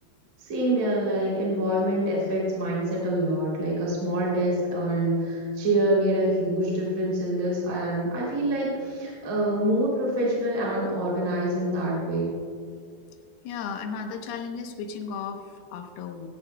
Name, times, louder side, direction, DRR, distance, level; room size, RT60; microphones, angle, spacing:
voice 1, 0.4-12.3, right 1 dB, 30° right, -5 dB, 3.0 m, -26 dB
voice 2, 13.4-16.3, left 6 dB, 80° left, 4 dB, 2.3 m, -35 dB
16.5 x 16.0 x 2.2 m, 2.2 s
omnidirectional pair, 5.7 m